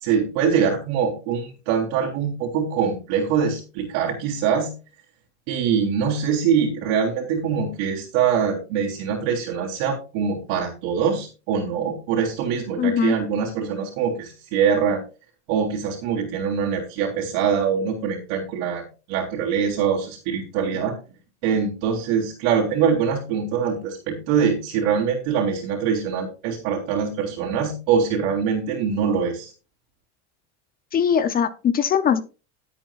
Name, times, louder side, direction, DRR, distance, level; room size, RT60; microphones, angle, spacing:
voice 1, 0.0-4.7 5.5-15.0 15.5-20.9 21.4-29.5, right 7 dB, 65° right, -4 dB, 3.5 m, -23 dB
voice 2, 12.8-13.1 30.9-32.2, left 8 dB, 25° left, 12 dB, 0.7 m, -20 dB
17.5 x 8.6 x 2.4 m, 0.33 s
supercardioid pair, 145°, 36 cm